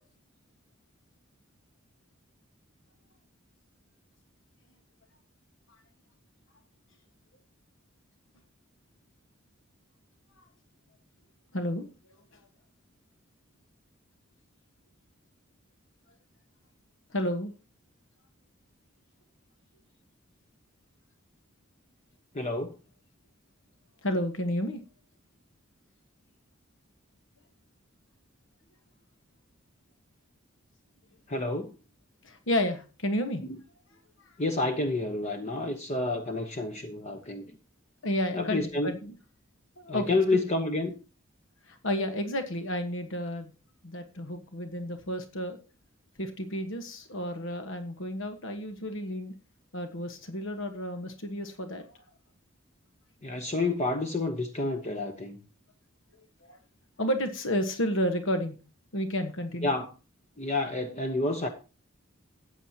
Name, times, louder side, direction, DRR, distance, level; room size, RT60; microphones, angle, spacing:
voice 1, 11.5-11.9 17.1-17.5 24.0-24.8 32.2-33.4 38.0-39.1 39.8-40.4 41.7-43.5 43.8-45.6 46.2-49.3 49.7-51.8 56.4-56.6 57.0-58.5 58.9-59.7, equal, 65° left, 8 dB, 1.5 m, -31 dB
voice 2, 22.3-22.7 31.3-31.7 33.4-33.6 34.4-37.6 38.3-38.9 39.9-40.9 53.2-55.4 59.6-59.9 60.4-61.5, left 2 dB, 35° left, 6 dB, 1.1 m, -29 dB
14.5 x 9.4 x 2.9 m, 0.33 s
head